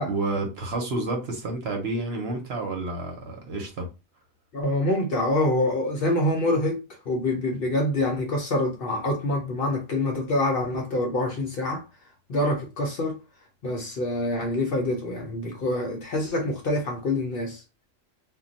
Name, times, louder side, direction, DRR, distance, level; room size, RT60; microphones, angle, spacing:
voice 1, 0.0-3.9, right 2 dB, 60° right, 0.9 m, -30 dB
voice 2, 4.5-11.8 12.3-13.2 13.6-17.6, left 1 dB, 55° left, 0.7 m, -26 dB
2.2 x 2.2 x 3.8 m
omnidirectional pair, 1.3 m